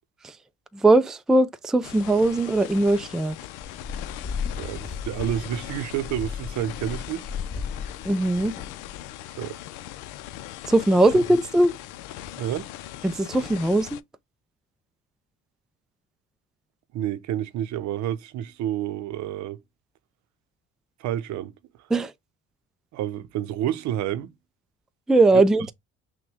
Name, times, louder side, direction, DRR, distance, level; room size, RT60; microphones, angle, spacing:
voice 1, 0.7-3.4 8.0-8.5 10.7-11.8 13.0-14.0 21.9-22.1 25.1-25.7, right 2 dB, ahead, 0.3 m, -20 dB
sound 1, 1.8-14.0, left 13 dB, 85° left, 0.6 m, -40 dB
sound 2, 3.6-9.1, left 6 dB, 30° left, 1.2 m, -35 dB
voice 2, 4.6-7.3 9.2-9.6 11.1-11.2 12.4-12.7 16.9-19.6 21.0-21.5 22.9-24.3, right 11 dB, 70° right, 0.7 m, -29 dB
6.0 x 2.3 x 3.4 m
cardioid pair, 105°, 30 cm